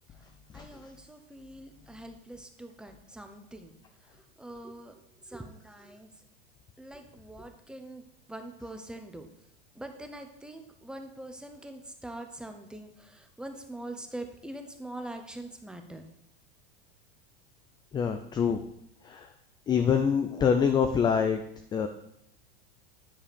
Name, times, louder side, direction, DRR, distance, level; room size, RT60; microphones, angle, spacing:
voice 1, 0.5-3.7 4.1-6.1 6.8-9.3 9.7-16.0, right 1 dB, 5° right, 5 dB, 0.8 m, -43 dB
voice 2, 17.9-18.6 19.0-19.3 19.7-21.4 21.7-21.9, left 7 dB, 15° left, 7 dB, 0.4 m, -25 dB
10.0 x 4.8 x 5.2 m, 0.77 s
supercardioid pair, 135°, 29 cm